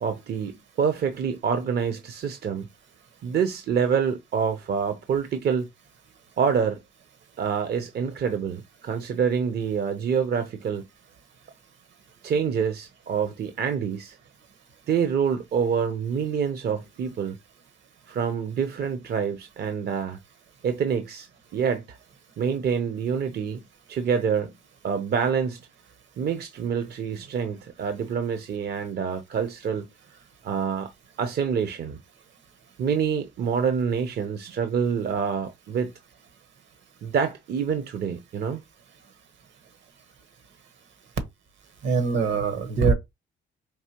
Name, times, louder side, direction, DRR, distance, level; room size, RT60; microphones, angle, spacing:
voice 1, 0.0-2.7 3.2-5.7 6.4-6.8 7.4-10.8 12.2-14.2 14.9-17.4 18.1-20.2 20.6-22.0 22.4-24.5 24.8-25.6 26.2-29.9 30.4-30.9 31.2-32.0 32.8-35.9 37.0-38.6, right 7 dB, 55° right, 0.6 m, -26 dB
voice 2, 41.8-42.9, right 4 dB, 70° right, 1.1 m, -22 dB
4.7 x 2.8 x 2.9 m
cardioid pair, 90°, 20 cm